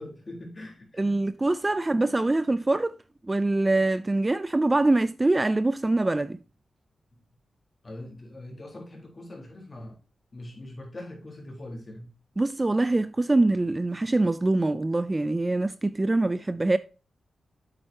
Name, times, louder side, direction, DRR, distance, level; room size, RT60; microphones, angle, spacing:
voice 1, 0.0-1.2 7.8-10.0 10.3-12.1, left 1 dB, 30° left, 4.3 m, -42 dB
voice 2, 1.0-3.0 3.3-6.4 12.4-16.8, right 2 dB, 20° right, 0.5 m, -24 dB
8.9 x 7.9 x 2.9 m
wide cardioid pair, 100°, 0 cm